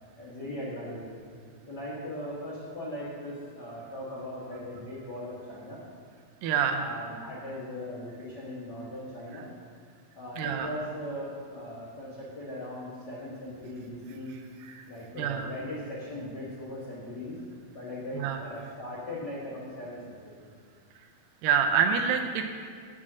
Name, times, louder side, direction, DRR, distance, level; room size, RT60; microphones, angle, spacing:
voice 1, 0.2-1.1 1.7-5.8 6.7-9.5 10.1-14.3 14.9-17.4 17.7-20.4, left 1 dB, 75° left, -6 dB, 0.9 m, -39 dB
voice 2, 6.4-6.8 10.4-10.7 14.6-14.8 15.2-15.5 18.1-18.4 21.4-22.5, right 7 dB, 80° right, 5 dB, 2.2 m, -26 dB
7.4 x 6.6 x 7.2 m, 2.1 s
omnidirectional pair, 4.2 m